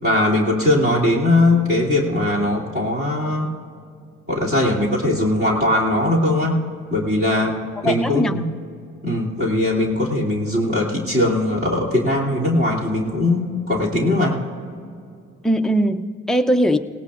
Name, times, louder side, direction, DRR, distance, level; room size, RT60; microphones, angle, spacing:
voice 1, 0.0-3.5 4.3-6.6 6.9-7.6 7.8-8.4 9.0-14.4, left 1 dB, 35° right, -5 dB, 2.8 m, -20 dB
voice 2, 7.8-8.5 15.4-16.8, equal, ahead, 6 dB, 0.6 m, -20 dB
18.0 x 18.0 x 2.5 m, 2.3 s
cardioid pair, 90°, 30 cm